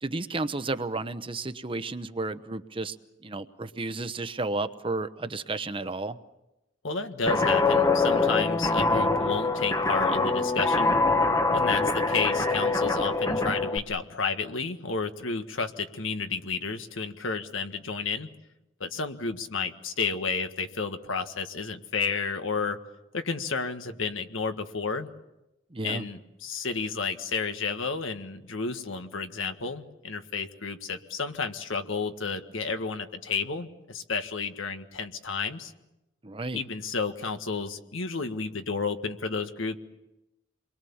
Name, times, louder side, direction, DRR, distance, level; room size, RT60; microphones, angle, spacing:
voice 1, 0.0-3.0 3.2-6.2 25.7-26.1 36.2-36.6, right 2 dB, 25° right, 10 dB, 0.9 m, -32 dB
voice 2, 6.8-11.0 11.5-18.3 18.8-22.8 23.1-25.1 25.8-35.7 36.5-39.8, left 4 dB, 85° left, 7 dB, 1.6 m, -31 dB
Guitar, 7.3-13.8, left 3 dB, 15° left, 0.9 m, -24 dB
28.5 x 22.5 x 7.2 m, 0.94 s
head